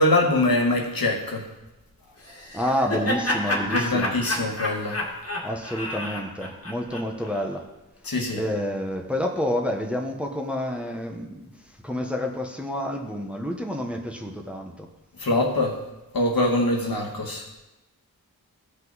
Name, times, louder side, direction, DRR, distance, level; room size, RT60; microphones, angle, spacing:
voice 1, 0.0-1.5 3.6-5.0 8.0-8.4 15.2-15.8 16.1-17.4, left 1 dB, 70° left, 0 dB, 1.7 m, -23 dB
Laughter, 2.2-7.4, left 1 dB, 40° left, 1.9 m, -29 dB
voice 2, 2.5-4.2 5.4-7.7 8.3-11.5 11.8-14.9, equal, 5° right, 2 dB, 1.1 m, -29 dB
16.0 x 5.4 x 4.1 m, 0.98 s
wide cardioid pair, 70°, 36 cm